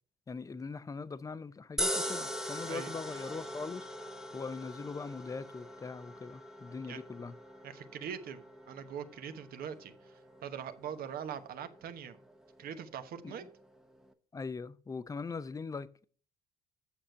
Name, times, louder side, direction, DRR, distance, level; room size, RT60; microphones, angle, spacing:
voice 1, 0.3-3.9 4.3-7.3 13.2-13.4 14.3-16.0, left 4 dB, 20° left, 0.6 m, -41 dB
sound 1, 1.8-14.1, equal, 5° right, 0.9 m, -42 dB
voice 2, 7.6-8.4 8.7-12.2 12.6-13.4, right 8 dB, 60° right, 1.1 m, -42 dB
8.7 x 6.6 x 5.7 m
cardioid pair, 110°, 17 cm